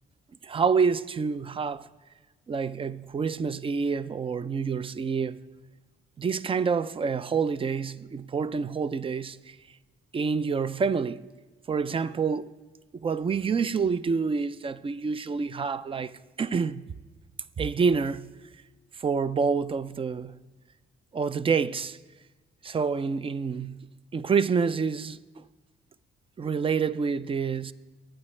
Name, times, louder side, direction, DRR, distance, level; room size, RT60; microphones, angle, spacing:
voice 1, 0.4-1.9 2.5-5.4 6.2-9.6 10.1-11.2 11.7-12.5 13.0-16.9 17.6-18.3 19.0-20.4 21.1-22.0 22.6-23.9 24.1-25.2 26.4-27.7, right 5 dB, 25° right, 0.4 m, -27 dB
21.0 x 8.9 x 3.2 m
cardioid pair, 90°, 20 cm